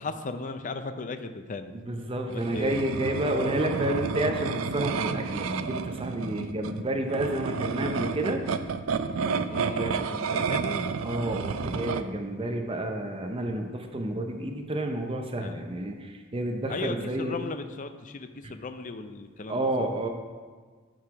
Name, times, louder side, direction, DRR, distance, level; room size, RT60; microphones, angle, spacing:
voice 1, 0.0-1.7 2.2-2.8 9.2-11.0 15.4-15.6 16.7-19.9, left 3 dB, 40° left, 9 dB, 0.5 m, -37 dB
voice 2, 1.7-8.4 9.8-9.9 11.0-17.4 18.4-18.5 19.5-20.1, right 1 dB, 25° right, 3 dB, 0.6 m, -30 dB
sound 1, 2.3-12.0, right 5 dB, 80° right, 0.4 m, -31 dB
12.0 x 4.8 x 4.8 m, 1.5 s
head